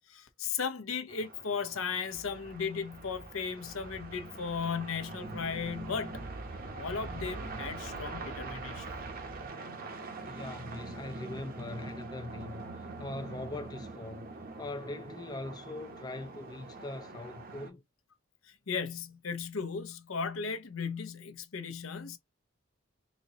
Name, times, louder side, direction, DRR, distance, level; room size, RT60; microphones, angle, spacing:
voice 1, 0.0-6.2 6.7-8.9 18.4-22.2, left 5 dB, 70° left, 0.8 m, -36 dB
sound 1, 1.1-17.7, right 3 dB, 45° right, 0.8 m, -44 dB
sound 2, 2.1-9.5, right 2 dB, 75° right, 1.1 m, -47 dB
voice 2, 10.2-17.8, left 2 dB, 20° left, 0.5 m, -41 dB
4.0 x 2.9 x 2.8 m
head